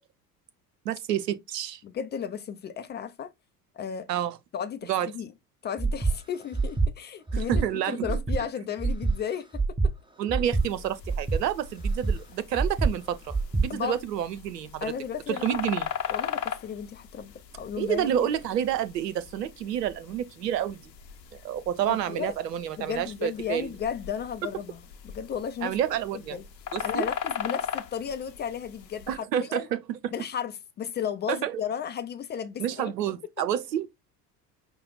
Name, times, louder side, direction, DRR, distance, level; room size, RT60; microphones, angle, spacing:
voice 1, 0.8-1.8 4.1-4.4 4.9-5.1 7.3-8.1 10.2-14.9 15.4-15.9 17.8-20.8 21.4-23.7 25.6-26.4 26.7-27.1 29.1-29.8 31.3-31.6 32.6-33.9, right 10 dB, 75° right, 0.7 m, -29 dB
voice 2, 1.8-3.3 3.7-4.1 4.5-5.3 5.6-9.9 13.7-14.0 14.8-15.6 16.1-18.3 21.9-22.3 22.8-24.8 25.0-25.7 26.3-26.4 26.8-29.7 30.1-32.9, left 8 dB, 25° left, 0.4 m, -34 dB
Breathing, 5.8-6.2 6.5-6.9 7.3-7.6 8.0-8.4 8.8-9.1 9.5-9.9 10.3-10.6 11.0-11.4 11.8-12.2 12.5-12.9 13.3-13.7, right 3 dB, 10° right, 1.0 m, -25 dB
sound 1, 10.5-29.2, left 8 dB, 85° left, 0.7 m, -39 dB
5.7 x 2.1 x 3.9 m
figure-of-eight pair, 65°, 49 cm